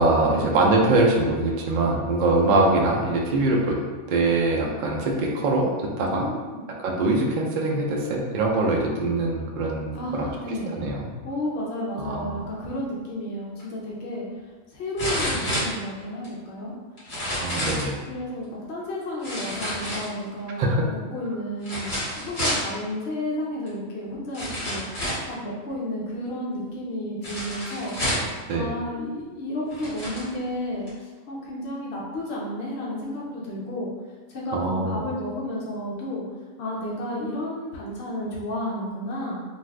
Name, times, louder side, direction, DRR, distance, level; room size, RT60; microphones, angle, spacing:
voice 1, 0.0-3.8 4.1-6.3 6.7-11.1 12.0-12.5 17.4-18.0 20.6-20.9 28.5-28.7 34.5-35.0, right 2 dB, 65° right, -1 dB, 0.5 m, -23 dB
voice 2, 6.1-6.6 9.9-10.7 11.2-14.3 14.7-16.7 18.1-28.0 28.5-33.9 34.3-36.2 36.6-39.4, left 1 dB, 65° left, -5 dB, 0.8 m, -32 dB
sound 1, 13.6-13.7 15.0-16.3 17.0-17.9 19.2-20.4 21.6-22.7 23.7-23.8 24.3-25.3 27.2-28.4 29.2-29.3 29.7-30.3 30.9-31.0, equal, 40° left, 1.2 m, -29 dB
2.6 x 2.4 x 3.2 m, 1.3 s
omnidirectional pair, 1.3 m